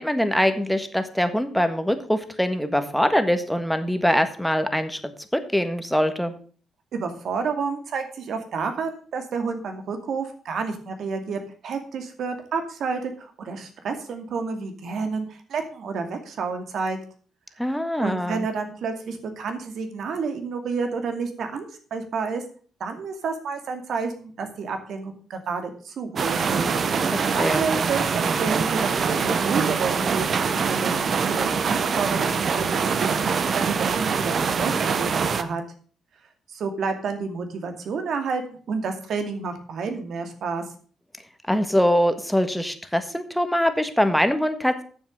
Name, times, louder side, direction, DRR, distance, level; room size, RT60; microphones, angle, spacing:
voice 1, 0.0-5.0 5.3-6.3 17.6-18.5 27.1-27.6 41.5-44.8, equal, ahead, 8 dB, 1.5 m, -23 dB
voice 2, 6.9-17.0 18.0-21.7 21.9-22.4 22.8-26.7 27.3-35.6 36.5-40.6, right 5 dB, 65° right, 6 dB, 2.4 m, -30 dB
sound 1, 26.2-35.4, right 5 dB, 50° right, 1.0 m, -24 dB
9.4 x 7.2 x 6.7 m, 0.43 s
cardioid pair, 90°, 0 cm